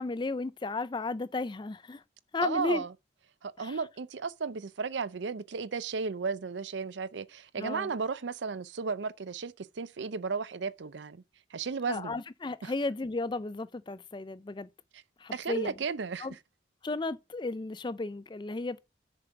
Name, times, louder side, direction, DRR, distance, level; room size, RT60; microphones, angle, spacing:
voice 1, 0.0-2.0 2.3-2.8 3.6-3.8 7.6-7.9 11.9-14.7 15.2-15.7 16.2-16.4 16.8-18.8, left 3 dB, 25° left, 0.4 m, -34 dB
voice 2, 2.4-2.9 3.4-11.2 11.5-12.2 12.6-12.7 15.3-16.3, right 5 dB, 70° right, 0.5 m, -34 dB
6.7 x 5.3 x 5.7 m
head